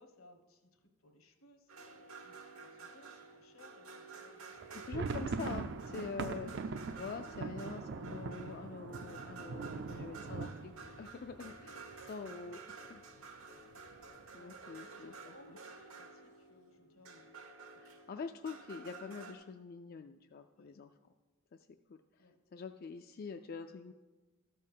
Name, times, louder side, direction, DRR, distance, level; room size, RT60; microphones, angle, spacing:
voice 1, 0.0-5.0 14.3-17.3 17.6-18.0 20.6-20.8 22.2-22.4, left 2 dB, 75° left, 6 dB, 1.2 m, -62 dB
sound 1, 1.7-19.3, right 4 dB, 85° right, 1.3 m, -52 dB
sound 2, 4.6-12.3 12.6-12.7 13.0-13.2 13.7-14.2, right 4 dB, 55° right, 0.5 m, -42 dB
voice 2, 4.7-12.6 12.9-13.0 14.3-15.6 17.8-20.9 21.9-23.9, left 5 dB, 45° left, 7 dB, 0.3 m, -45 dB
13.0 x 4.4 x 7.2 m, 1.3 s
head